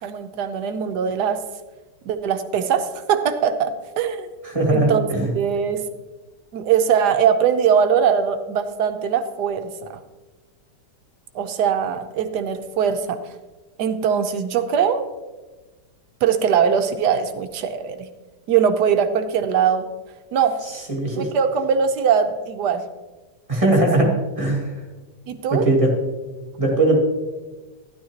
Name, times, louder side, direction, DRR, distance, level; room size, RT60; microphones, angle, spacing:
voice 1, 0.0-1.4 2.1-4.3 4.7-5.1 5.3-5.8 6.5-10.0 11.3-13.2 13.8-15.1 16.2-18.1 18.5-19.9 20.3-20.6 21.1-22.8 23.6-23.7 25.3-25.7, right 7 dB, 70° right, 8 dB, 1.3 m, -21 dB
voice 2, 4.4-5.3 20.9-21.3 23.5-24.7 25.5-25.9 26.6-27.0, right 2 dB, 20° right, -2 dB, 1.8 m, -19 dB
12.5 x 11.0 x 2.9 m, 1.2 s
omnidirectional pair, 1.9 m